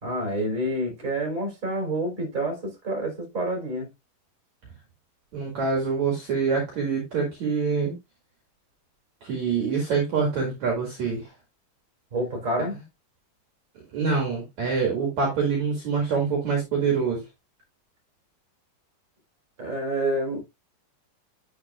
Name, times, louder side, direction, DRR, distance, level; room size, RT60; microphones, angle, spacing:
voice 1, 0.0-3.9 12.1-12.7 19.6-20.4, right 1 dB, 20° right, 3.1 m, -28 dB
voice 2, 5.3-7.9 9.2-11.2 13.9-17.2, right 5 dB, 50° right, 2.9 m, -25 dB
10.0 x 6.4 x 2.3 m
omnidirectional pair, 4.9 m